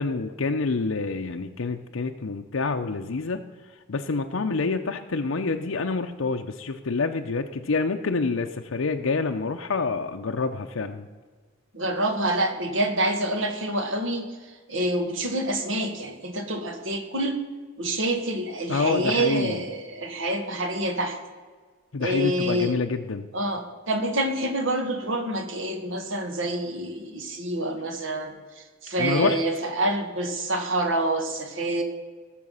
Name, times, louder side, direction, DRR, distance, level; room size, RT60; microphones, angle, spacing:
voice 1, 0.0-3.4 3.9-11.1 18.7-19.6 21.9-23.3 29.0-29.4, left 4 dB, 75° left, 4 dB, 0.6 m, -27 dB
voice 2, 11.7-14.3 14.7-17.4 17.8-21.2 22.0-22.7 23.3-28.3 28.8-31.8, right 1 dB, 70° right, 5 dB, 1.8 m, -27 dB
18.5 x 6.9 x 5.5 m, 1.5 s
head